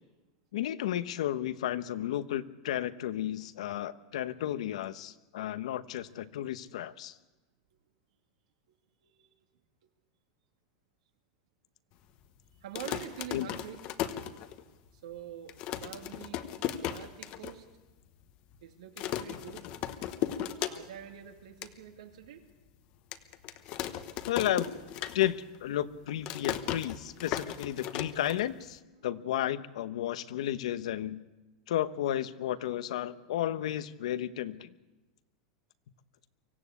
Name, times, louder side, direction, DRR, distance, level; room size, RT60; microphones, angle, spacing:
voice 1, 0.5-7.2 13.3-13.5 24.3-24.7 25.1-31.2 31.7-34.7, left 12 dB, 80° left, 12 dB, 1.0 m, -33 dB
voice 2, 9.0-9.3 12.6-13.8 14.9-16.4 16.8-17.7 18.6-19.6 20.7-22.5, right 10 dB, 85° right, 4 dB, 2.7 m, -46 dB
sound 1, 12.6-14.9 15.2-15.3 15.5-17.5 17.9-18.0 18.2-18.6 19.0-21.1 21.4-21.7 22.2-22.3 23.1-25.6 25.8-28.8, left 11 dB, 30° left, 1.0 m, -36 dB
24.0 x 16.0 x 8.4 m, 1.1 s
supercardioid pair, 180°, 3 cm